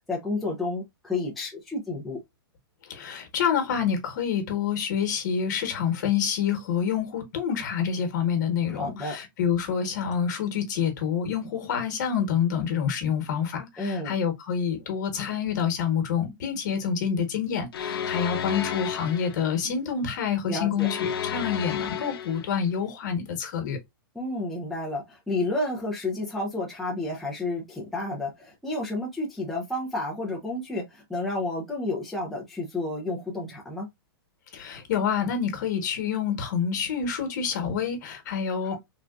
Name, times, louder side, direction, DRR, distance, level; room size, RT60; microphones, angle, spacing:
voice 1, 0.1-2.2 8.7-9.2 13.8-14.2 20.5-20.9 24.1-33.9 38.6-38.8, left 2 dB, ahead, 0.4 m, -31 dB
voice 2, 2.9-23.8 34.5-38.8, left 7 dB, 50° left, 1.2 m, -27 dB
sound 1, 17.7-19.5 20.8-22.5, left 8 dB, 75° left, 0.7 m, -31 dB
3.3 x 2.4 x 2.4 m
hypercardioid pair, 165°, 13 cm